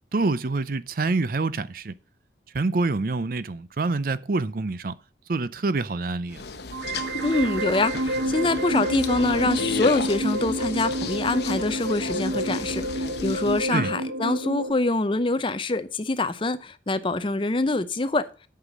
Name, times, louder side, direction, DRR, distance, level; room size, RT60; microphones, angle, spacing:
voice 1, 0.1-1.9 2.5-5.0 5.3-6.4 13.7-13.9, right 3 dB, 50° right, 0.5 m, -26 dB
sound 1, 6.3-13.7, left 4 dB, 70° left, 0.9 m, -34 dB
sound 2, 6.7-14.7, right 1 dB, 85° right, 1.4 m, -29 dB
voice 2, 7.2-18.3, left 2 dB, 30° left, 0.6 m, -25 dB
8.2 x 5.7 x 7.2 m
head